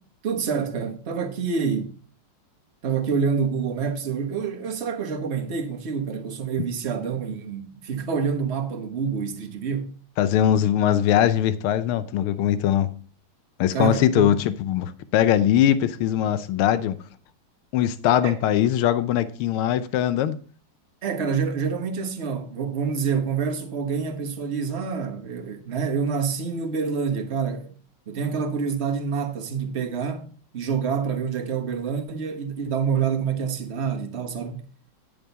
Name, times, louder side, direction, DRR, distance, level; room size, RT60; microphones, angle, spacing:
voice 1, 0.2-1.9 2.8-9.9 13.7-14.3 18.2-18.4 21.0-27.7 28.1-34.7, right 6 dB, 35° right, 1.2 m, -27 dB
voice 2, 10.2-12.9 13.6-17.0 17.7-20.4, left 11 dB, 85° left, 1.6 m, -21 dB
10.0 x 7.0 x 4.0 m
omnidirectional pair, 2.4 m